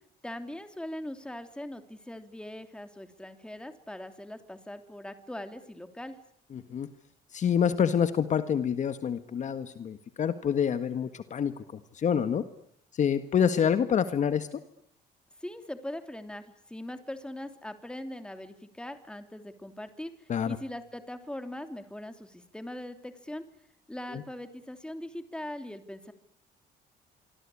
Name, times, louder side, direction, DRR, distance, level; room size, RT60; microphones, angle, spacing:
voice 1, 0.2-6.2 15.4-23.5 23.9-26.1, left 1 dB, 5° left, 8 dB, 3.1 m, -41 dB
voice 2, 6.5-6.9 7.3-11.5 11.9-12.4 12.9-14.6 20.3-20.6 24.1-24.2, left 8 dB, 45° left, 11 dB, 1.7 m, -27 dB
26.0 x 24.5 x 8.6 m, 0.69 s
cardioid pair, 110°, 17 cm